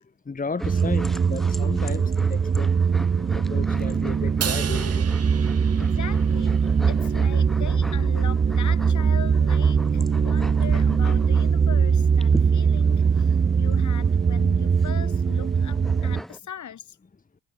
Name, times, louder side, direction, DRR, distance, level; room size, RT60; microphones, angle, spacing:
voice 1, 0.3-2.7 3.3-5.3 5.7-5.9, left 4 dB, 20° left, 2.1 m, -34 dB
sound 1, 0.6-16.4, equal, ahead, 7.4 m, -41 dB
sound 2, 0.6-16.2, right 6 dB, 20° right, 0.6 m, -21 dB
Crash cymbal, 4.4-6.8, right 8 dB, 40° right, 1.9 m, -33 dB
voice 2, 5.8-17.0, left 9 dB, 50° left, 4.1 m, -40 dB
supercardioid pair, 90°, 38 cm